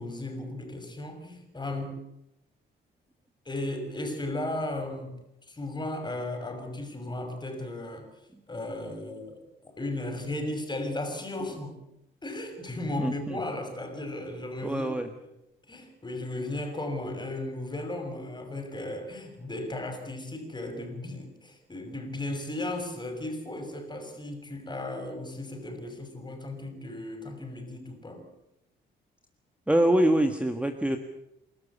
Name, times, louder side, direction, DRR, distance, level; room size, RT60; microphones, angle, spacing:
voice 1, 0.0-2.0 3.4-5.1 5.5-8.1 8.5-11.8 12.2-14.9 15.7-28.2, left 1 dB, 20° left, 6 dB, 6.3 m, -35 dB
voice 2, 13.0-13.4 14.6-15.1 29.7-31.0, right 1 dB, 5° right, 6 dB, 1.7 m, -24 dB
28.5 x 13.0 x 8.6 m, 0.88 s
cardioid pair, 90°, 20 cm